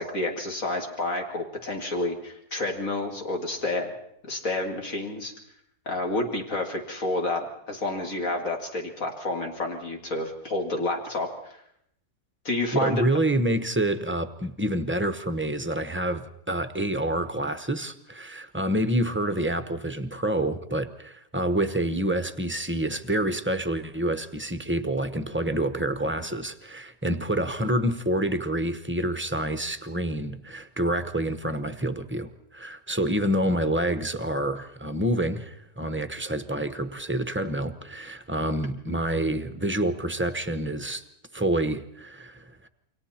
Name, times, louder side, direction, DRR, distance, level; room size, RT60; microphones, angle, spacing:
voice 1, 0.0-3.9 4.2-5.3 5.9-11.6 12.4-13.0, left 2 dB, 60° left, 2 dB, 2.7 m, -29 dB
voice 2, 12.7-41.0 41.3-42.7, right 1 dB, 10° right, 10 dB, 0.6 m, -27 dB
28.5 x 24.0 x 4.4 m, 0.73 s
omnidirectional pair, 1.7 m